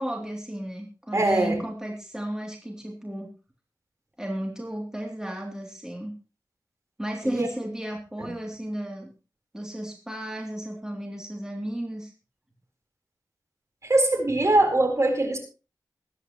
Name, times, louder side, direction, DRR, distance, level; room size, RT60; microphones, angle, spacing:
voice 1, 0.0-3.3 4.2-6.1 7.0-9.1 9.5-12.1, right 1 dB, 10° right, 0 dB, 2.9 m, -33 dB
voice 2, 1.1-1.6 7.2-7.5 8.2-8.3 13.8-15.4, right 2 dB, 45° right, 4 dB, 3.9 m, -22 dB
21.5 x 9.9 x 3.1 m, 0.35 s
wide cardioid pair, 75°, 7 cm